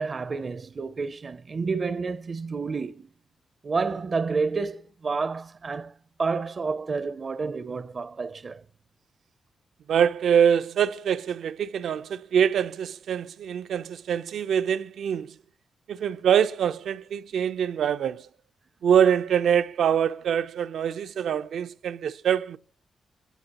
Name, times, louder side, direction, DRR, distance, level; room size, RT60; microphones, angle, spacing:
voice 1, 0.0-3.1 3.6-5.9 6.2-8.6, right 4 dB, 40° right, 0.6 m, -29 dB
voice 2, 9.9-15.4 15.9-18.3 18.8-22.6, right 8 dB, 80° right, 0.6 m, -24 dB
23.5 x 16.5 x 3.0 m
cardioid pair, 105°, 0 cm